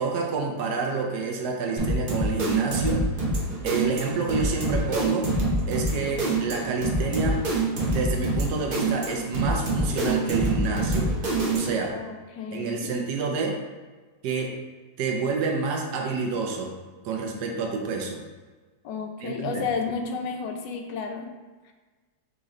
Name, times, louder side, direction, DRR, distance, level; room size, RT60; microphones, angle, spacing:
voice 1, 0.0-3.0 3.6-5.3 5.7-7.4 7.9-11.1 11.5-11.9 12.5-13.6 14.2-14.5 15.0-16.8 17.0-18.2 19.2-19.6, right 4 dB, 70° right, 1 dB, 1.2 m, -28 dB
sound 1, 1.8-11.9, right 2 dB, 50° right, 0.6 m, -26 dB
voice 2, 11.9-12.9 18.8-21.3 21.6-21.7, left 5 dB, 80° left, 4 dB, 1.2 m, -32 dB
3.8 x 3.7 x 3.1 m, 1.3 s
omnidirectional pair, 1.9 m